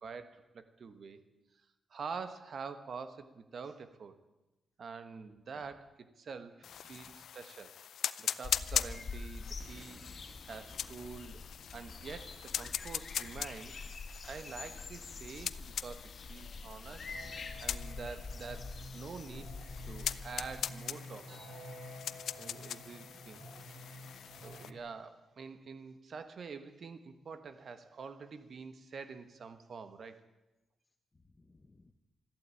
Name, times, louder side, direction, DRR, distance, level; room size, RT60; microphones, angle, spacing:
voice 1, 0.0-1.2 1.9-4.2 4.8-7.7 8.2-10.0 10.4-11.5 11.7-17.1 17.6-19.6 19.9-21.7 22.4-23.4 24.4-30.2, right 5 dB, 50° right, 10 dB, 1.3 m, -46 dB
sound 1, 6.6-24.7, left 9 dB, 75° left, 0.5 m, -41 dB
voice 2, 6.8-7.2 16.5-17.7 31.1-31.9, left 2 dB, 20° left, 7 dB, 0.9 m, -64 dB
sound 2, 8.4-20.6, left 4 dB, 40° left, 2.1 m, -46 dB
Singing, 17.1-24.8, left 1 dB, 75° right, 7.9 m, -50 dB
14.0 x 12.0 x 8.5 m, 1.0 s
cardioid pair, 125°, 0 cm